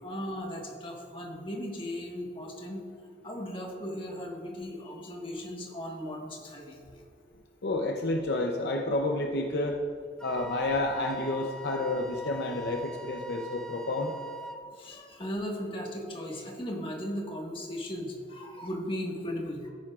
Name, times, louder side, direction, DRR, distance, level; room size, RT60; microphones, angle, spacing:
voice 1, 0.0-2.8 3.2-7.0 14.7-19.7, equal, 30° left, 0 dB, 1.5 m, -37 dB
voice 2, 7.6-9.8 10.2-14.1, left 2 dB, 65° left, 2 dB, 0.7 m, -30 dB
Wind instrument woodwind instrument, 10.2-14.7, right 2 dB, 5° left, 0.4 m, -42 dB
13.5 x 10.5 x 2.4 m, 2.3 s
head